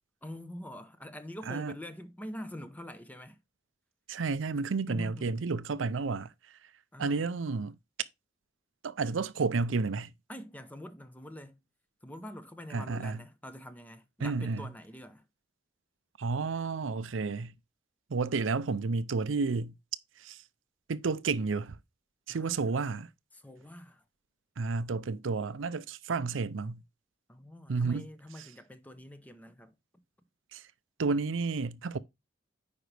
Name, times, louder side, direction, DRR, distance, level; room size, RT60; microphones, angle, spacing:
voice 1, 0.2-3.4 4.8-5.5 6.9-7.3 10.3-11.6 12.0-15.3 22.3-22.7 23.3-24.0 27.3-30.0, equal, 10° left, 0.9 m, -45 dB
voice 2, 4.1-6.3 7.0-7.7 8.8-10.1 12.7-13.2 14.2-14.6 16.2-17.5 18.1-19.7 20.2-20.4 20.9-21.8 22.3-23.1 24.6-26.8 27.7-28.1 30.5-30.6 31.0-32.0, right 4 dB, 85° right, 0.5 m, -31 dB
9.3 x 5.1 x 3.3 m
head